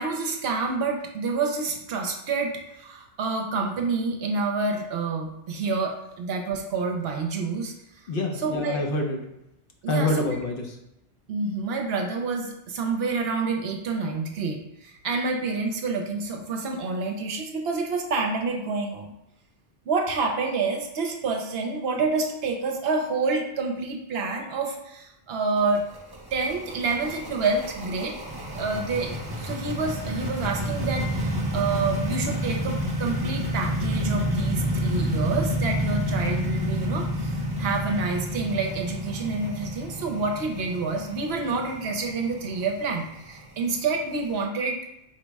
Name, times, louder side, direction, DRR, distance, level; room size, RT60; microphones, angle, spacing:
voice 1, 0.0-7.7 8.4-8.8 9.8-10.4 11.3-19.1 19.9-25.8 26.3-28.1 28.5-44.8, right 4 dB, 65° right, 2 dB, 0.8 m, -28 dB
voice 2, 8.1-9.2 9.9-10.8, left 2 dB, 60° left, 1 dB, 0.7 m, -26 dB
sound 1, 25.6-44.3, equal, 30° right, 0.5 m, -29 dB
4.4 x 2.0 x 4.5 m, 0.85 s
omnidirectional pair, 1.2 m